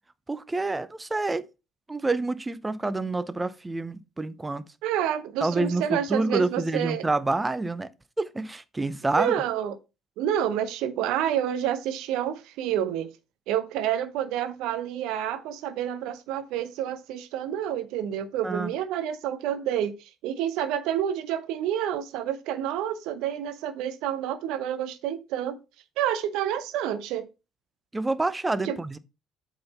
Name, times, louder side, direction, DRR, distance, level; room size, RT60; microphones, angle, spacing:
voice 1, 0.3-1.5 1.9-4.6 5.4-7.9 8.2-9.3 18.4-18.7 27.9-29.0, right 2 dB, 20° right, 0.6 m, -28 dB
voice 2, 4.8-7.1 9.2-9.8 10.2-13.1 13.5-25.6 26.0-27.3 28.6-28.8, right 10 dB, 65° right, 0.7 m, -29 dB
7.7 x 3.9 x 4.1 m
figure-of-eight pair, 55°, 0 cm